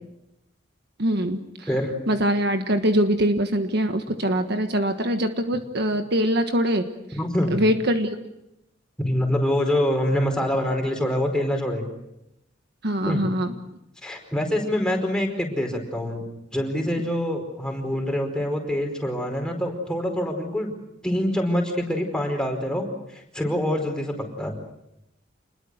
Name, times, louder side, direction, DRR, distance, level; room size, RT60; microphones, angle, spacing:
voice 1, 1.0-1.7 2.1-6.9 7.5-8.1 12.8-13.5, equal, 55° right, 6 dB, 1.5 m, -23 dB
voice 2, 7.1-7.6 9.0-11.8 13.0-13.3 14.0-16.2 16.5-20.7 21.0-24.5, left 1 dB, 5° left, 2 dB, 4.9 m, -25 dB
28.0 x 21.5 x 6.5 m, 0.87 s
head